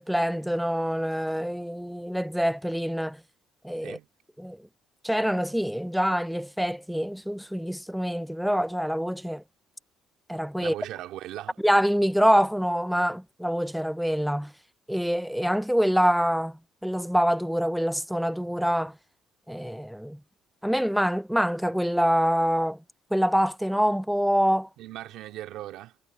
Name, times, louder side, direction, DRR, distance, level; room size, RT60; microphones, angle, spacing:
voice 1, 0.0-3.2 3.6-4.0 4.4-4.6 5.0-9.4 10.3-10.7 11.6-14.5 14.9-18.9 19.5-20.2 20.6-22.8 23.1-24.7, equal, ahead, 0.4 m, -25 dB
voice 2, 10.6-11.6 24.8-26.0, right 14 dB, 75° right, 2.5 m, -38 dB
cardioid pair, 110°, 0 cm